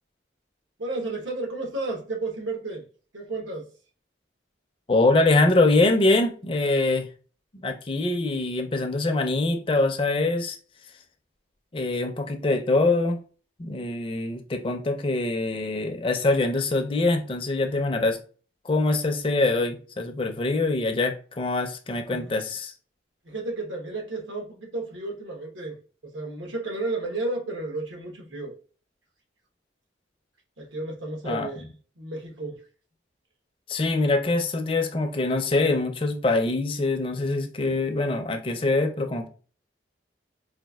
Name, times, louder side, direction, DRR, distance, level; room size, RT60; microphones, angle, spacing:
voice 1, 0.8-2.9 3.1-3.7 22.1-22.2 23.2-28.5 30.6-31.7 32.0-32.6, right 2 dB, 85° right, 1.1 m, -32 dB
voice 2, 4.9-7.1 7.5-10.6 11.7-13.2 13.6-18.2 18.6-22.7 31.2-31.5 33.7-39.3, left 2 dB, 30° left, 0.4 m, -24 dB
4.1 x 2.4 x 2.3 m
head